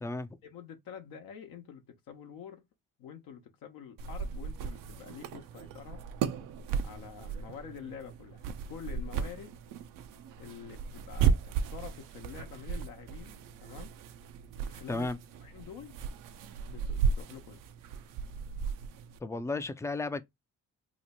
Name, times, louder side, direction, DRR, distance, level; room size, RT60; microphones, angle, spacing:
voice 1, 0.4-2.7 3.0-6.0 6.8-9.6 10.4-13.9 14.6-15.1 15.4-16.0 16.6-17.6, left 8 dB, 75° left, 0.9 m, -47 dB
sound 1, 4.0-19.2, right 6 dB, 70° right, 0.6 m, -35 dB
voice 2, 19.2-20.2, left 2 dB, 10° left, 0.4 m, -33 dB
2.9 x 2.1 x 4.1 m
supercardioid pair, 60°, 34 cm